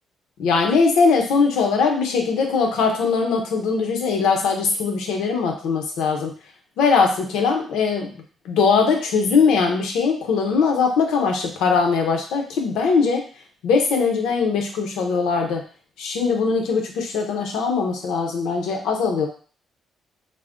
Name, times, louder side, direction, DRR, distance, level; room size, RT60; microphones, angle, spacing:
voice 1, 0.4-6.3 6.8-13.3 13.6-15.6 16.0-19.3, left 5 dB, 90° left, 2 dB, 0.6 m, -21 dB
2.5 x 2.0 x 3.5 m, 0.42 s
cardioid pair, 90°, 0 cm